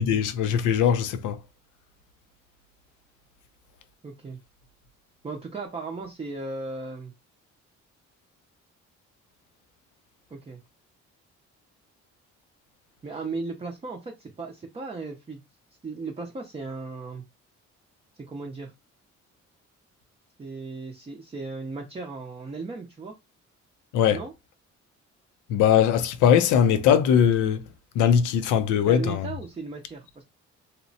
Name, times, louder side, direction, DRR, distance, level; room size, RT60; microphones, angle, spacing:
voice 1, 0.0-1.4 23.9-24.2 25.5-27.7 27.9-29.3, left 8 dB, 90° left, 0.5 m, -20 dB
voice 2, 4.0-4.4 5.2-7.1 10.3-10.6 13.0-15.4 15.8-17.2 18.1-18.7 20.4-23.1 24.1-24.3 28.9-30.2, right 3 dB, 20° right, 0.5 m, -36 dB
2.8 x 2.0 x 2.6 m
cardioid pair, 90°, 30 cm